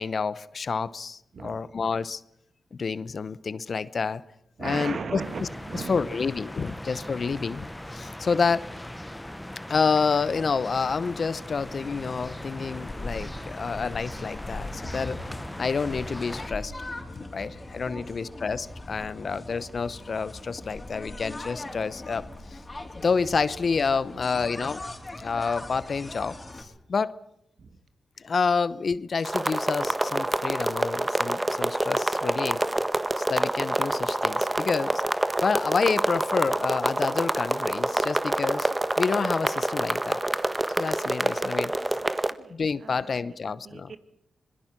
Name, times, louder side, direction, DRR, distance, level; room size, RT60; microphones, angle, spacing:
voice 1, 0.0-2.2 2.7-4.2 4.6-5.5 5.7-7.7 7.9-8.7 9.7-15.2 15.6-16.7 17.2-22.6 23.0-24.8 25.2-27.2 28.2-32.6 33.2-35.0 35.4-40.2 40.8-41.7 42.5-43.9, left 5 dB, 60° left, 17 dB, 0.9 m, -28 dB
voice 2, 1.3-1.7 4.6-6.2 14.8-15.1 17.2-17.6 17.9-18.3 24.1-24.6 27.6-27.8 41.8-44.0, right 5 dB, 65° right, 10 dB, 1.9 m, -40 dB
sound 1, 5.2-16.5, left 1 dB, 10° left, 1.0 m, -39 dB
sound 2, 11.6-26.6, left 2 dB, 35° left, 4.5 m, -40 dB
sound 3, 29.2-42.3, right 1 dB, 20° right, 1.4 m, -27 dB
26.0 x 21.0 x 6.1 m, 0.76 s
supercardioid pair, 40°, 0 cm